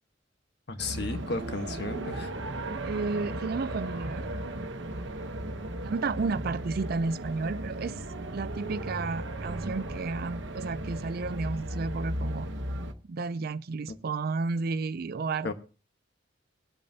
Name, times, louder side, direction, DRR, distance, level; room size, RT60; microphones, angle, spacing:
voice 1, 0.7-2.3 13.9-14.0 15.4-15.5, left 3 dB, 60° left, 1.3 m, -34 dB
sound 1, 0.8-12.9, right 1 dB, 70° right, 1.0 m, -36 dB
voice 2, 2.8-4.3 5.0-5.3 5.8-8.0 8.3-12.5 13.1-15.5, right 4 dB, 55° right, 0.4 m, -32 dB
21.5 x 8.5 x 2.8 m
head